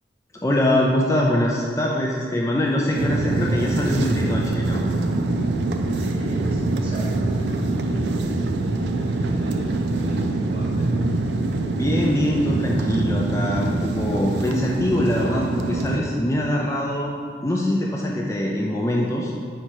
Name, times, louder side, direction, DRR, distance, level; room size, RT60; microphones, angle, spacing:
voice 1, 0.4-4.8 11.7-17.1 17.4-19.4, left 1 dB, 15° left, -2 dB, 0.4 m, -23 dB
sound 1, 2.9-16.0, right 2 dB, 75° right, 0.4 m, -24 dB
voice 2, 5.9-10.9, equal, 30° right, -5 dB, 1.2 m, -41 dB
4.9 x 4.5 x 4.4 m, 2.2 s
head